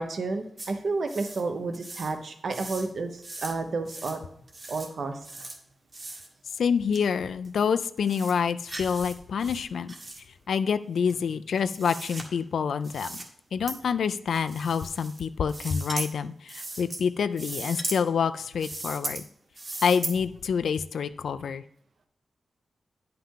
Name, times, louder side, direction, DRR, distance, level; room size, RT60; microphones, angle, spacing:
voice 1, 0.0-4.2 4.7-5.2, right 3 dB, 60° right, 7 dB, 0.9 m, -31 dB
sound 1, 0.6-0.7 1.1-1.4 1.7-2.1 2.5-2.9 3.2-3.5 3.9-4.2 4.5-4.9 5.2-5.6 5.9-6.3 6.9-7.0 7.4-7.5 8.0-8.3 8.7-9.1 9.4-10.2 11.1-12.2 12.8-13.3 13.7-13.8 14.3-15.2 15.5-16.1 16.5-17.0 17.3-18.0 18.5-19.2 19.6-20.1, right 2 dB, 40° right, 1.5 m, -38 dB
voice 2, 6.6-9.9 10.5-13.2 13.5-19.2 19.8-21.6, left 6 dB, 85° left, 12 dB, 0.4 m, -27 dB
10.0 x 5.7 x 3.7 m, 0.72 s
wide cardioid pair, 135°, 0 cm